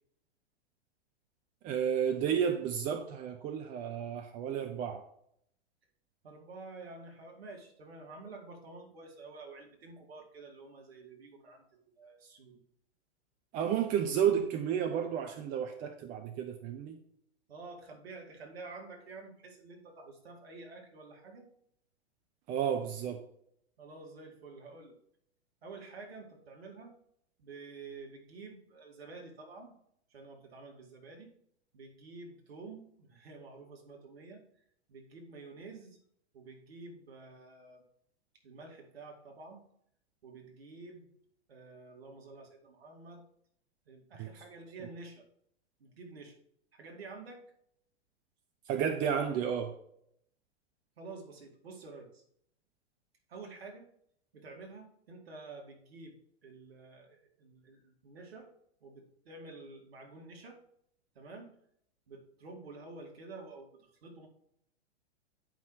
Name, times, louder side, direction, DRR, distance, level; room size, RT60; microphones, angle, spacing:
voice 1, 1.6-5.0 13.5-17.0 22.5-23.2 44.2-44.3 48.7-49.7, right 8 dB, 25° right, 6 dB, 0.7 m, -32 dB
voice 2, 6.2-12.6 17.5-21.5 23.8-25.0 25.6-26.9 27.4-29.8 30.1-31.3 31.7-34.4 34.9-36.0 36.3-37.8 38.4-39.6 40.2-41.1 41.5-43.2 43.9-45.3 45.8-46.4 46.7-47.4 51.0-52.2 53.3-53.9 54.3-56.2 56.4-58.5 58.8-60.6 61.2-61.5 62.1-64.3, right 3 dB, 60° right, 2 dB, 2.0 m, -49 dB
9.2 x 5.3 x 4.7 m, 0.70 s
figure-of-eight pair, 100°, 34 cm